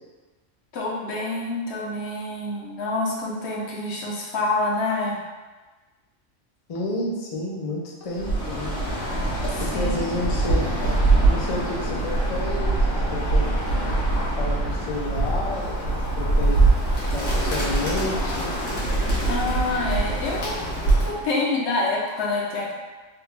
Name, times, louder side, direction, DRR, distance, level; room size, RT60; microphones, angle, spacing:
voice 1, 0.7-5.2 9.5-9.6 10.0-10.2 19.3-20.6 21.0-22.8, left 2 dB, 70° left, -3 dB, 0.9 m, -27 dB
voice 2, 6.7-8.7 9.6-10.7 11.3-13.5 14.4-16.6 17.1-18.5, left 2 dB, 50° left, -3 dB, 0.4 m, -30 dB
Bird, 8.1-21.3, right 2 dB, 85° left, 1.3 m, -23 dB
3.2 x 2.3 x 3.3 m, 1.3 s
omnidirectional pair, 1.2 m